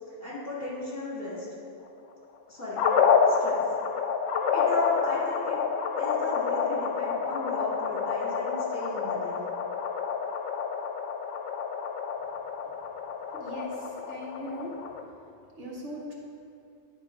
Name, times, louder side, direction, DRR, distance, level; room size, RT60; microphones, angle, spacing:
voice 1, 0.2-1.5 2.5-2.9 3.3-3.6 4.5-5.6 6.0-9.4, left 2 dB, 45° left, -7 dB, 2.4 m, -35 dB
sound 1, 2.8-15.0, left 6 dB, 85° left, 1.0 m, -28 dB
voice 2, 13.3-14.8 15.5-16.1, equal, 65° right, -3 dB, 1.5 m, -39 dB
11.0 x 3.8 x 5.0 m, 2.5 s
omnidirectional pair, 1.3 m